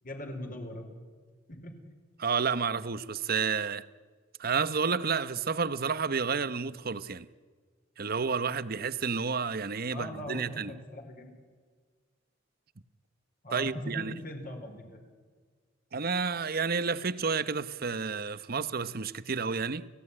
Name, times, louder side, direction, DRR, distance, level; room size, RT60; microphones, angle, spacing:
voice 1, 0.0-0.9 1.5-1.7 9.9-11.3 13.4-15.0, left 1 dB, 45° left, 4.7 m, -40 dB
voice 2, 2.2-3.8 4.4-7.3 8.0-10.8 13.5-14.1 15.9-19.9, right 5 dB, 50° right, 0.9 m, -30 dB
29.5 x 16.0 x 9.9 m
head